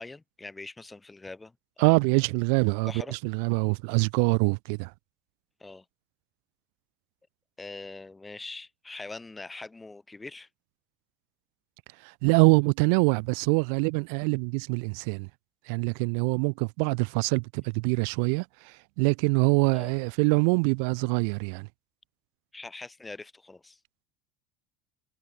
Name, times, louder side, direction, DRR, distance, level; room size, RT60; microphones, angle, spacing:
voice 1, 0.0-1.5 1.8-1.9 2.9-3.2 5.6-5.8 7.6-10.5 19.7-19.9 22.5-23.8, left 3 dB, 15° left, 7.1 m, -42 dB
voice 2, 1.8-4.9 12.0-15.3 15.7-21.7, right 38 dB, 75° right, 1.2 m, -24 dB
supercardioid pair, 100°, 0 cm